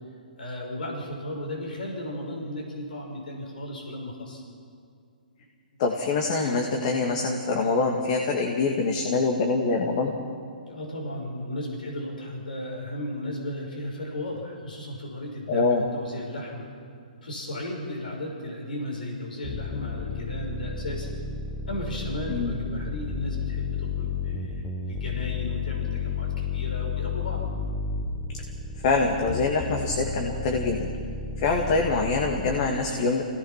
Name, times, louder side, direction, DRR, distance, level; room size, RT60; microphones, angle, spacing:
voice 1, 0.4-4.4 10.6-16.7 17.2-21.2 21.7-27.4, left 1 dB, 80° left, -1 dB, 5.9 m, -35 dB
voice 2, 5.8-10.1 15.5-15.8 22.3-22.6 28.8-30.9 31.4-33.2, left 3 dB, 45° left, 2 dB, 2.3 m, -24 dB
sound 1, 19.4-32.7, left 5 dB, 10° left, 1.5 m, -32 dB
26.0 x 18.0 x 6.0 m, 2.3 s
hypercardioid pair, 135°, 5 cm